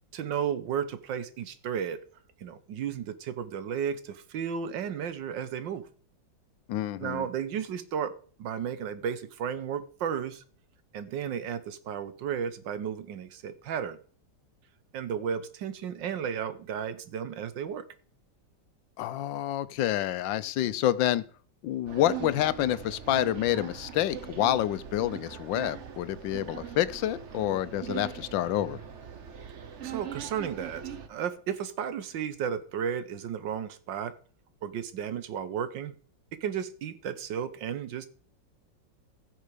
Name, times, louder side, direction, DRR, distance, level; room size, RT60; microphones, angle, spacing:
voice 1, 0.1-2.0 2.4-5.9 7.0-8.1 8.4-10.4 10.9-14.0 14.9-17.8 29.8-34.1 34.6-35.9 36.4-38.1, right 8 dB, 80° right, 1.6 m, -33 dB
voice 2, 6.7-7.3 19.0-21.2 21.6-28.8, left 12 dB, 85° left, 1.4 m, -28 dB
sound 1, 21.9-31.1, right 9 dB, 45° right, 1.1 m, -41 dB
15.0 x 6.5 x 5.0 m
omnidirectional pair, 2.0 m